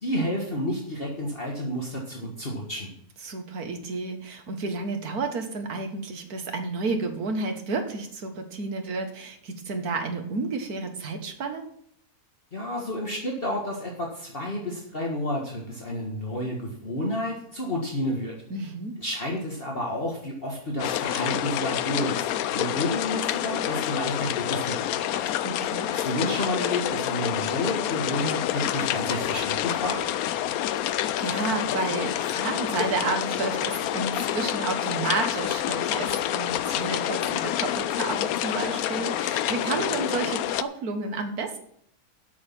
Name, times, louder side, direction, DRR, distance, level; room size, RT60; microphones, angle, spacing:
voice 1, 0.0-2.9 12.5-18.3 19.0-22.1 22.5-25.3 25.9-30.0, left 1 dB, 40° left, -1 dB, 1.9 m, -30 dB
voice 2, 3.2-11.7 18.5-19.0 25.4-25.9 30.8-41.6, right 3 dB, 75° right, 5 dB, 1.9 m, -31 dB
sound 1, 20.8-40.6, left 12 dB, 75° left, 1.0 m, -28 dB
8.4 x 6.5 x 7.5 m, 0.66 s
omnidirectional pair, 1.6 m